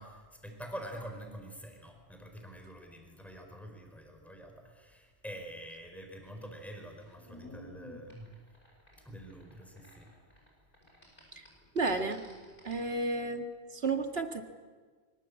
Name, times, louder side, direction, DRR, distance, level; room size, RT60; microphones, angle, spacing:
voice 1, 0.0-8.3 9.0-10.1, equal, ahead, 4 dB, 4.7 m, -46 dB
sound 1, 6.1-10.5 10.7-12.9, left 1 dB, 50° left, 8.2 m, -53 dB
voice 2, 11.7-12.2 12.6-14.4, right 3 dB, 60° right, 6 dB, 2.2 m, -32 dB
25.0 x 24.5 x 8.4 m, 1.5 s
omnidirectional pair, 1.2 m